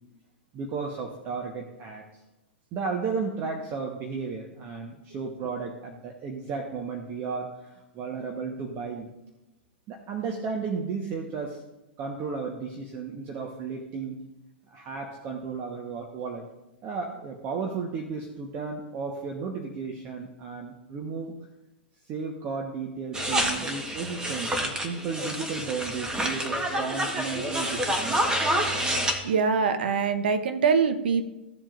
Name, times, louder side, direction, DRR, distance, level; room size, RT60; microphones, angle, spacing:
voice 1, 0.5-2.0 2.7-9.1 9.9-11.6 12.0-14.2 14.7-16.5 16.8-21.3 22.1-28.2, right 5 dB, 35° right, 2 dB, 1.2 m, -34 dB
sound 1, 23.1-29.2, right 1 dB, 10° right, 1.3 m, -28 dB
voice 2, 29.2-31.3, right 5 dB, 65° right, 9 dB, 1.0 m, -23 dB
15.5 x 7.4 x 2.6 m, 1.0 s
figure-of-eight pair, 105°, 6 cm